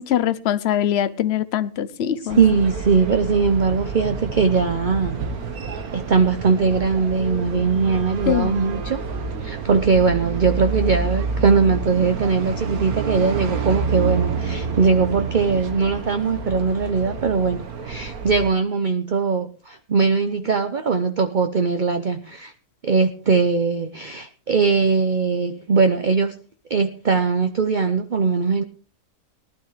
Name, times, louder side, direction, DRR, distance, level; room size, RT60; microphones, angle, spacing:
voice 1, 0.0-2.4 8.3-8.6, left 10 dB, 55° left, 0.9 m, -22 dB
sound 1, 2.3-18.5, right 5 dB, 85° right, 1.8 m, -28 dB
voice 2, 2.4-5.2 5.9-9.0 9.4-22.5 22.8-26.3 26.7-28.6, right 5 dB, 40° right, 0.8 m, -20 dB
19.0 x 12.0 x 3.3 m
omnidirectional pair, 1.5 m